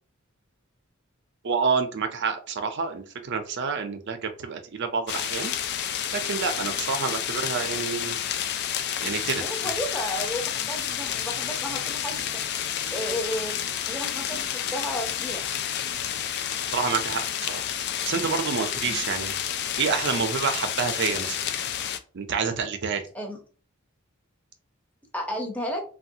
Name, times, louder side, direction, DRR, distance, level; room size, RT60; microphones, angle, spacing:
voice 1, 1.4-5.5 6.1-8.2 9.0-9.4 16.7-17.6 18.1-19.3 19.8-21.4 22.1-23.0, right 5 dB, 60° right, 7 dB, 0.5 m, -28 dB
sound 1, 5.1-22.0, left 9 dB, 55° left, 0.3 m, -30 dB
voice 2, 9.4-12.4 12.9-15.4 18.8-19.1 23.1-23.4 25.1-25.8, equal, 5° left, 0 dB, 0.7 m, -33 dB
3.3 x 2.3 x 2.7 m, 0.38 s
head